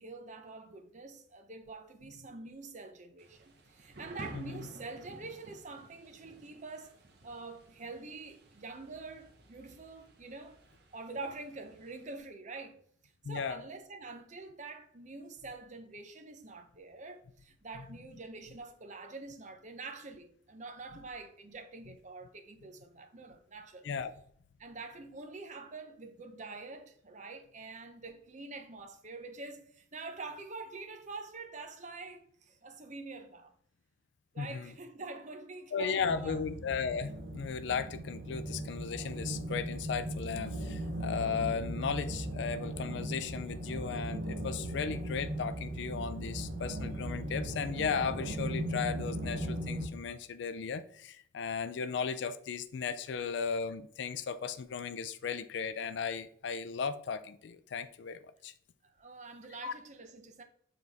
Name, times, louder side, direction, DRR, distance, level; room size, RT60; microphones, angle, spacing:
voice 1, 0.0-7.0 7.2-10.6 10.9-23.8 24.6-33.5 34.3-36.4 58.8-60.4, right 3 dB, 40° right, 0.8 m, -46 dB
Thunder / Rain, 3.2-12.2, right 1 dB, 60° right, 1.0 m, -54 dB
voice 2, 4.3-4.7 13.2-13.6 23.8-24.1 34.4-34.7 35.7-58.5 59.6-59.7, left 6 dB, 65° left, 0.4 m, -36 dB
sound 1, 36.0-49.9, right 1 dB, 85° right, 1.0 m, -38 dB
7.1 x 3.9 x 3.5 m
head